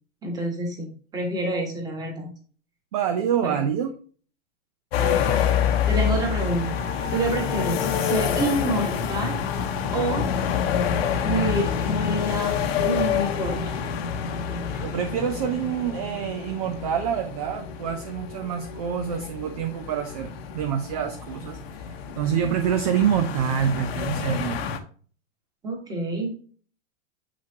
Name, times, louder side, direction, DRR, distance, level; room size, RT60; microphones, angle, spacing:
voice 1, 0.2-0.9 1.1-2.3 3.4-3.6 5.0-6.7 7.1-9.4 9.9-10.3 11.2-13.7 14.5-14.8 25.6-26.3, right 2 dB, 10° right, 1 dB, 1.5 m, -28 dB
voice 2, 2.9-3.9 14.8-24.6, right 8 dB, 30° right, 7 dB, 0.5 m, -26 dB
sound 1, 4.9-24.8, left 7 dB, 50° left, 1.0 m, -27 dB
7.6 x 6.1 x 2.8 m, 0.42 s
supercardioid pair, 170°, 38 cm